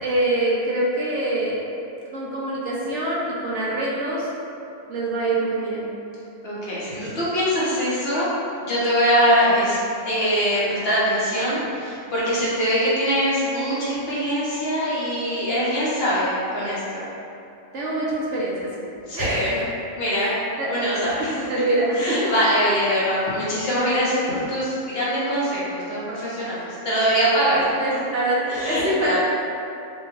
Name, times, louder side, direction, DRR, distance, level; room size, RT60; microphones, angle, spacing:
voice 1, 0.0-1.6 2.1-4.3 4.9-5.9 9.5-9.6 17.7-18.7 19.1-19.6 20.1-22.3 26.6-26.7 27.5-29.2, right 1 dB, 60° right, -6 dB, 0.9 m, -25 dB
voice 2, 6.4-8.3 8.6-9.8 10.0-17.1 19.1-19.6 20.0-20.3 20.7-21.3 22.0-27.6 28.5-29.2, equal, 45° left, -9 dB, 1.0 m, -23 dB
4.5 x 2.3 x 3.0 m, 2.7 s
omnidirectional pair, 1.6 m